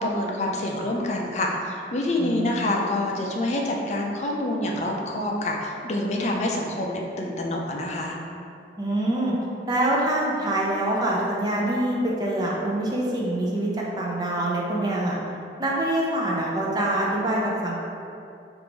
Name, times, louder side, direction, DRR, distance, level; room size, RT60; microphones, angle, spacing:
voice 1, 0.0-8.2, left 1 dB, 40° left, -1 dB, 0.4 m, -27 dB
voice 2, 2.2-2.7 8.8-9.3 9.7-15.2 15.6-17.7, right 1 dB, 20° right, -4 dB, 0.5 m, -25 dB
3.4 x 2.6 x 4.5 m, 2.7 s
head